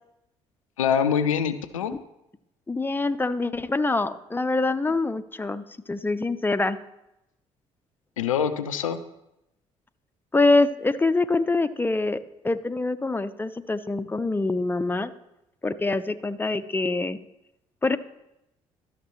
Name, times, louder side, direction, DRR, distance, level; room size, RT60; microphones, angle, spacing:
voice 1, 0.8-1.9 8.2-9.0, left 7 dB, 85° left, 11 dB, 0.5 m, -24 dB
voice 2, 2.7-6.8 10.3-15.1 15.6-17.2 17.8-18.0, left 3 dB, 10° left, 12 dB, 0.6 m, -25 dB
12.5 x 6.5 x 3.1 m, 0.87 s
hypercardioid pair, 45°, 17 cm